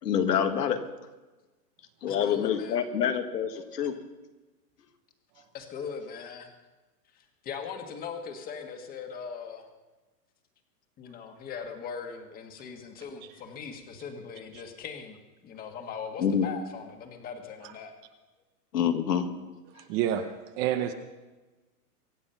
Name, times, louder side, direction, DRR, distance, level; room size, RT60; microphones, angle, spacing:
voice 1, 0.0-0.8 2.0-3.9 16.2-16.5 18.7-19.3, left 8 dB, 85° left, 7 dB, 2.0 m, -26 dB
voice 2, 2.1-2.8 3.8-3.9 5.5-6.5 7.1-9.7 11.0-17.9, left 6 dB, 20° left, 5 dB, 1.6 m, -40 dB
voice 3, 19.7-20.3 20.6-20.9, right 10 dB, 25° right, 8 dB, 0.7 m, -29 dB
24.0 x 8.5 x 5.7 m, 1.2 s
hypercardioid pair, 155°, 47 cm